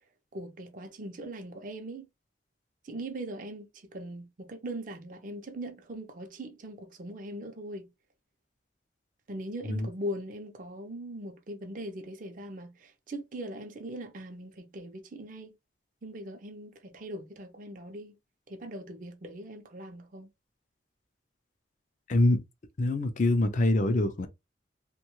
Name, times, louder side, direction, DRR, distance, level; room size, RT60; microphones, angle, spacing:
voice 1, 0.3-2.1 2.8-7.9 9.3-15.5 16.0-18.2 18.5-20.3, right 1 dB, 50° right, 0.6 m, -40 dB
voice 2, 22.1-22.4 22.8-24.3, left 1 dB, 45° left, 0.5 m, -25 dB
3.0 x 2.2 x 3.0 m
head